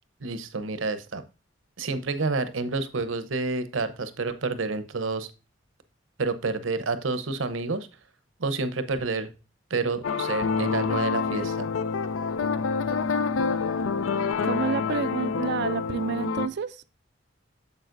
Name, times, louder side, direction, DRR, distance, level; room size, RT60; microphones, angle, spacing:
voice 1, 0.2-1.2 1.8-5.3 6.2-7.9 8.4-9.3 9.7-11.7, right 3 dB, 80° right, 0.8 m, -29 dB
sound 1, 10.0-16.5, left 5 dB, 80° left, 0.5 m, -27 dB
voice 2, 14.1-16.8, right 6 dB, 60° right, 0.4 m, -30 dB
9.1 x 7.0 x 2.6 m
head